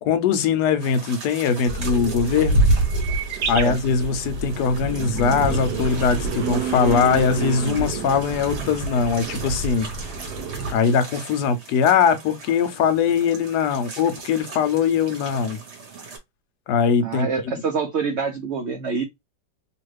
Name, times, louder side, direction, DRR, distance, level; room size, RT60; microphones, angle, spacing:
voice 1, 0.0-2.6 3.5-9.9 10.7-15.6 16.7-17.3, left 6 dB, 70° left, 1.1 m, -21 dB
sound 1, 0.8-16.2, right 4 dB, 45° right, 1.1 m, -40 dB
sound 2, 1.7-10.7, right 3 dB, 70° right, 1.1 m, -26 dB
voice 2, 3.4-3.8 17.0-19.0, right 5 dB, 90° right, 0.6 m, -26 dB
3.0 x 2.5 x 3.2 m
omnidirectional pair, 2.0 m